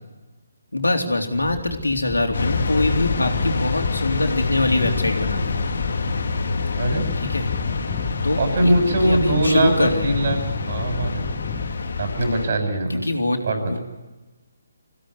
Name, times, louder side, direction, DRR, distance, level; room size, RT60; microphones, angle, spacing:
voice 1, 0.7-5.7 7.2-7.5 8.2-8.7 9.0-10.2 12.9-13.4 13.7-13.8, left 2 dB, 90° left, 3 dB, 3.5 m, -23 dB
sound 1, 1.3-12.4, left 6 dB, 10° left, 1.3 m, -35 dB
sound 2, 2.3-12.5, left 4 dB, 65° left, 2.6 m, -26 dB
voice 2, 8.4-10.4 10.7-11.3 12.0-13.0 13.4-13.8, right 1 dB, 50° right, 5 dB, 7.1 m, -21 dB
25.0 x 16.5 x 9.7 m, 1.2 s
figure-of-eight pair, 150°, 0 cm